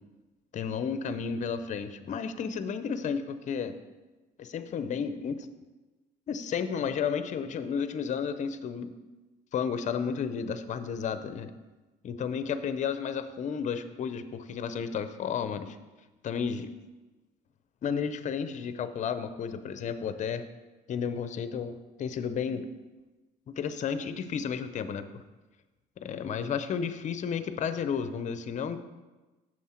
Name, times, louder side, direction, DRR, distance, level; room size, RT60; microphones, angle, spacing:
voice 1, 0.5-3.7 4.4-5.5 6.3-8.9 9.5-11.5 12.0-15.8 16.2-16.7 17.8-20.4 20.9-22.6 23.5-25.2 26.0-28.8, left 6 dB, 45° left, 11 dB, 0.6 m, -32 dB
7.4 x 6.5 x 4.4 m, 1.2 s
cardioid pair, 110°, 17 cm